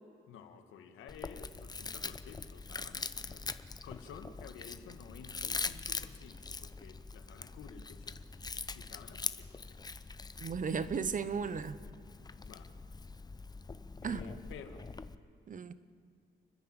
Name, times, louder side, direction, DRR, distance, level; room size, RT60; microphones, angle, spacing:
voice 1, 0.3-8.2 8.7-10.0 12.4-12.7 14.0-14.8, left 7 dB, 85° left, 1.9 m, -52 dB
Chewing mastication, 1.1-15.2, left 4 dB, 20° left, 0.8 m, -43 dB
voice 2, 10.4-11.8 14.0-14.2 15.5-15.7, right 6 dB, 40° right, 1.1 m, -35 dB
30.0 x 10.5 x 8.9 m
cardioid pair, 90°, 20 cm